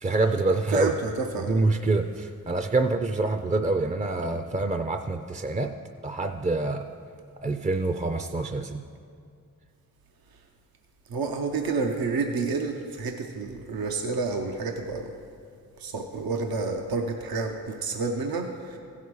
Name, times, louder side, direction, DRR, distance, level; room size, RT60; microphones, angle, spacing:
voice 1, 0.0-0.9 1.5-5.7 6.0-6.8 7.4-8.8, right 3 dB, 20° right, 7 dB, 0.4 m, -26 dB
voice 2, 0.7-1.7 11.1-15.1 15.8-18.8, right 4 dB, 80° right, 3 dB, 0.7 m, -29 dB
15.5 x 5.7 x 4.7 m, 2.3 s
cardioid pair, 55°, 35 cm